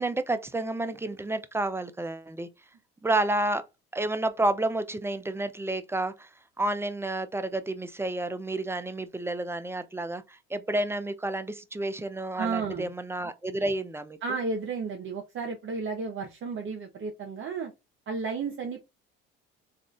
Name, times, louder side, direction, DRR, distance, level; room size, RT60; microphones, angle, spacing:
voice 1, 0.0-2.5 3.0-3.6 3.9-6.3 6.6-14.2, right 2 dB, 10° right, 0.3 m, -30 dB
voice 2, 12.4-12.9 14.2-17.7 18.1-18.9, right 4 dB, 45° right, 0.7 m, -33 dB
3.5 x 2.4 x 2.3 m
supercardioid pair, 75°, 29 cm